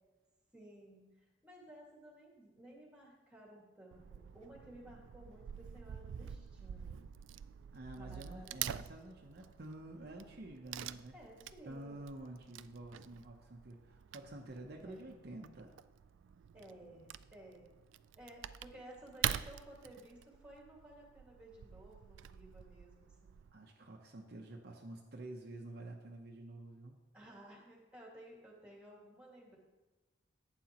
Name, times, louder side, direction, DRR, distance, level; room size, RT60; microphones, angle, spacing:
voice 1, 0.5-7.0 8.0-8.7 11.1-12.1 14.7-15.1 16.5-17.7 18.1-23.4 27.1-29.6, right 1 dB, 5° right, -2 dB, 1.9 m, -56 dB
Wood / Tearing, 3.9-23.5, right 10 dB, 75° right, 0.3 m, -46 dB
voice 2, 7.7-11.1 11.6-15.7 23.5-27.0, right 2 dB, 55° right, 1 dB, 0.8 m, -49 dB
11.5 x 9.0 x 2.9 m, 1.2 s
head